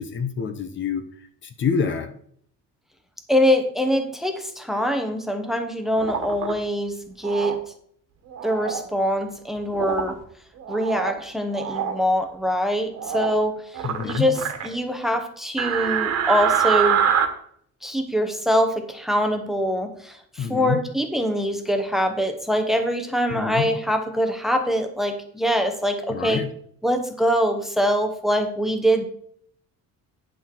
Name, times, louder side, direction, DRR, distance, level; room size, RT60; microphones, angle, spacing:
voice 1, 0.0-2.1 13.8-14.3 20.4-20.8 23.3-23.7 26.1-26.5, left 6 dB, 40° left, 8 dB, 0.8 m, -27 dB
voice 2, 3.3-7.6 8.4-10.2 10.7-13.6 14.0-17.0 17.8-26.4 26.8-29.0, equal, ahead, 5 dB, 0.9 m, -23 dB
sound 1, 6.0-6.5 7.2-7.6 8.3-8.8 9.7-10.1 10.6-11.2 11.5-11.9 12.9-13.4 13.7-14.7 15.6-17.3, right 8 dB, 55° right, 1.5 m, -24 dB
9.9 x 6.3 x 4.5 m, 0.63 s
cardioid pair, 175°, 31 cm